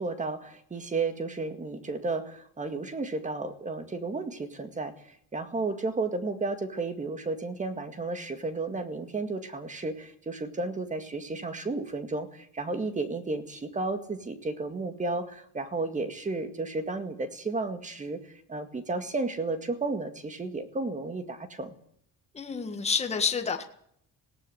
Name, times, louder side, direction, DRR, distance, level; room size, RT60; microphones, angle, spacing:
voice 1, 0.0-21.7, right 3 dB, 20° right, 9 dB, 2.0 m, -33 dB
voice 2, 22.3-23.6, left 5 dB, 15° left, 5 dB, 1.7 m, -28 dB
19.5 x 17.5 x 8.0 m, 0.66 s
cardioid pair, 175°, 36 cm